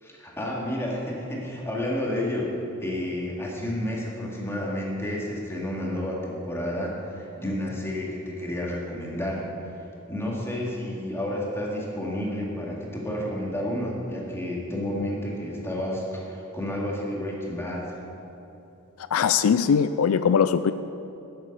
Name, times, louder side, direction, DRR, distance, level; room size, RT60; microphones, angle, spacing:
voice 1, 0.0-2.5 2.8-9.4 10.1-18.0, left 1 dB, 10° left, -3 dB, 2.2 m, -30 dB
voice 2, 19.1-20.7, left 7 dB, 75° left, 12 dB, 0.4 m, -21 dB
10.0 x 9.5 x 6.7 m, 2.9 s
head